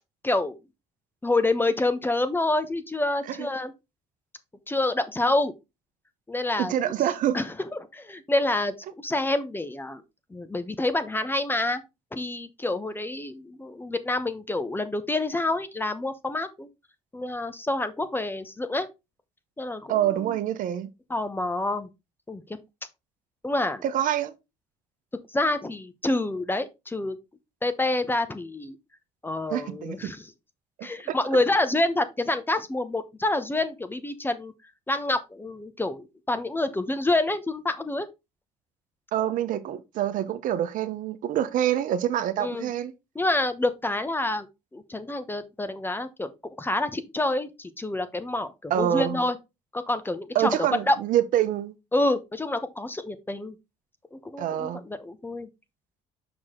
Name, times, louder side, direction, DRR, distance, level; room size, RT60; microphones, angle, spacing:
voice 1, 0.2-0.6 1.2-3.7 4.7-5.5 6.3-6.9 7.3-10.0 10.3-11.8 12.1-16.7 17.1-18.9 19.6-20.4 21.1-21.9 22.3-22.6 23.4-23.8 25.3-27.2 27.6-28.8 29.2-30.3 30.8-34.5 34.9-38.1 42.4-42.7 43.1-44.5 44.7-46.3 46.6-49.4 49.7-51.0 51.9-53.5 54.1-55.5, left 2 dB, 15° left, 0.9 m, -27 dB
voice 2, 6.6-7.4 19.9-20.9 23.8-24.3 29.5-30.0 31.1-31.2 39.1-42.9 48.7-49.2 50.3-51.7 54.4-54.8, right 11 dB, 60° right, 0.9 m, -26 dB
6.1 x 4.7 x 3.7 m
supercardioid pair, 80°, 15 cm